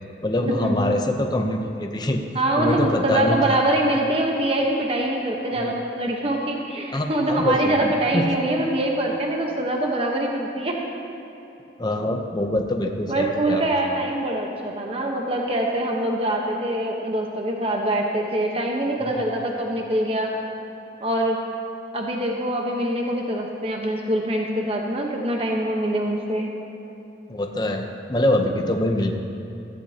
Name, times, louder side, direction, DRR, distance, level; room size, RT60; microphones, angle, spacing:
voice 1, 0.2-2.2 2.6-3.6 5.6-5.7 6.9-8.4 11.8-13.6 19.1-19.2 27.3-29.1, left 1 dB, 25° left, 3 dB, 0.7 m, -24 dB
voice 2, 2.3-10.8 13.1-20.3 21.0-21.4 21.9-26.5, right 1 dB, 35° right, 0 dB, 1.1 m, -24 dB
16.5 x 14.5 x 2.9 m, 3.0 s
head